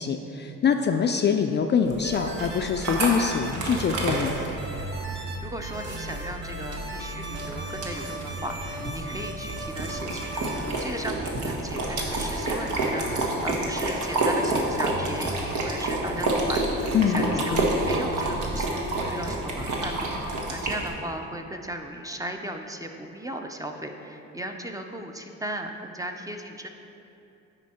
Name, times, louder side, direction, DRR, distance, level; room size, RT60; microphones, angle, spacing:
voice 1, 0.0-4.3 16.9-17.7, left 6 dB, 35° left, 5 dB, 0.4 m, -24 dB
sound 1, 1.8-20.9, right 2 dB, 75° right, 1.3 m, -29 dB
sound 2, 2.0-3.5 3.8-5.4 5.6-10.7, right 2 dB, 35° right, 1.4 m, -38 dB
sound 3, 2.4-19.3, right 2 dB, 55° right, 0.7 m, -39 dB
voice 2, 5.2-26.7, right 1 dB, 10° right, 4 dB, 0.5 m, -37 dB
9.8 x 4.5 x 4.3 m, 2.7 s
cardioid pair, 90°, 30 cm